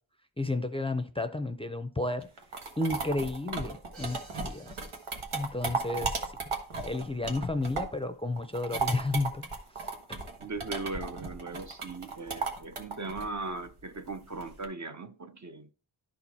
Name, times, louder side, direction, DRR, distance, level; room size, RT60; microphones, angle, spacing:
voice 1, 0.4-2.3 2.8-4.7 5.3-6.2 6.8-9.4 10.1-10.2, left 2 dB, 10° left, 0.5 m, -32 dB
sound 1, 2.2-8.0 8.4-14.6, right 4 dB, 85° right, 1.6 m, -35 dB
Crash cymbal, 3.9-5.8, right 3 dB, 70° right, 1.8 m, -54 dB
voice 2, 10.4-15.7, right 3 dB, 35° right, 0.7 m, -38 dB
12.0 x 4.5 x 4.2 m
wide cardioid pair, 110°, 48 cm